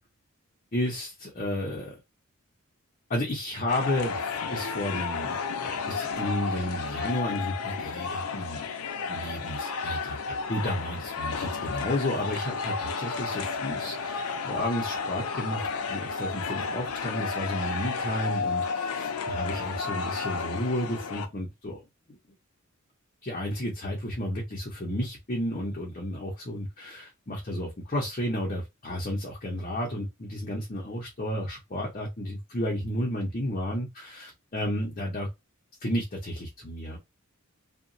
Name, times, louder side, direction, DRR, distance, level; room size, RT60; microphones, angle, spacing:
voice 1, 0.7-2.0 3.1-8.7 9.1-21.8 22.1-22.2 23.2-35.3 35.8-37.0, left 1 dB, 35° left, 0.6 m, -32 dB
sound 1, 3.7-21.3, left 5 dB, 80° left, 0.5 m, -32 dB
2.8 x 2.2 x 2.6 m
head